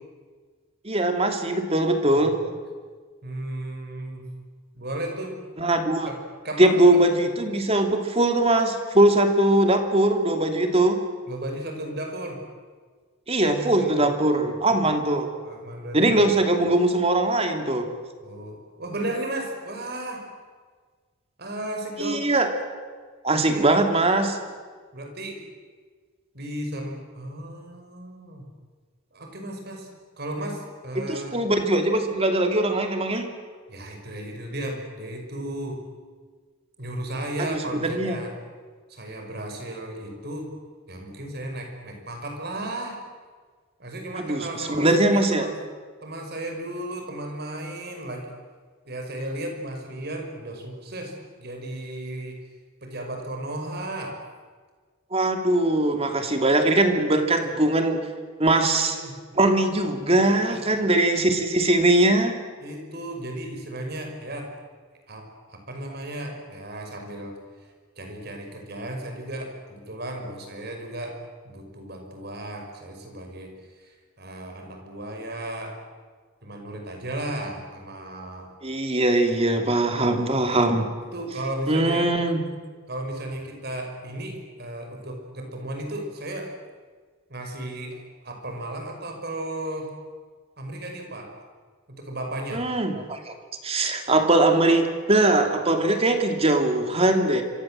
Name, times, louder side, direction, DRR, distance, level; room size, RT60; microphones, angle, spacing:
voice 1, 0.8-2.4 5.6-6.1 6.6-11.0 13.3-15.3 15.9-17.9 22.0-22.5 23.2-24.4 31.0-33.3 37.4-38.2 44.2-45.5 55.1-58.0 58.4-59.0 59.3-62.4 78.6-80.9 81.7-82.4 92.5-93.3 93.6-97.4, right 1 dB, 30° right, 5 dB, 2.8 m, -21 dB
voice 2, 3.2-4.2 4.7-5.4 6.1-6.8 7.1-7.2 11.3-12.4 13.5-14.8 15.4-16.4 18.2-20.3 21.4-22.3 23.3-23.7 24.9-25.4 26.3-28.5 29.1-29.9 30.2-31.4 33.7-35.8 36.8-38.3 38.9-40.5 40.9-43.0 43.8-45.6 46.0-48.3 48.9-52.4 52.8-54.2 58.9-59.2 60.4-60.9 62.6-64.5 65.1-67.7 68.0-75.8 76.4-78.5 79.8-79.9 81.0-82.1 82.9-86.5 87.3-89.9 90.6-91.4 91.9-92.7, right 1 dB, 50° right, 3 dB, 5.8 m, -35 dB
27.0 x 26.0 x 7.7 m, 1.5 s
head